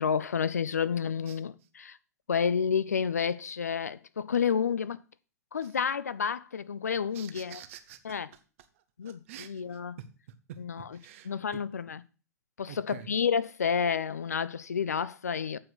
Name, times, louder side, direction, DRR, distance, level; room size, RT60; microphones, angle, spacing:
voice 1, 0.0-2.0 2.3-5.0 5.5-7.6 8.0-8.3 9.0-10.0 10.6-10.8 11.3-12.0 12.6-15.6, left 7 dB, 70° left, 0.5 m, -30 dB
voice 2, 7.1-8.4 8.7-11.6 12.7-13.1, right 9 dB, 50° right, 1.0 m, -48 dB
8.4 x 4.6 x 6.9 m
figure-of-eight pair, 95°, 9 cm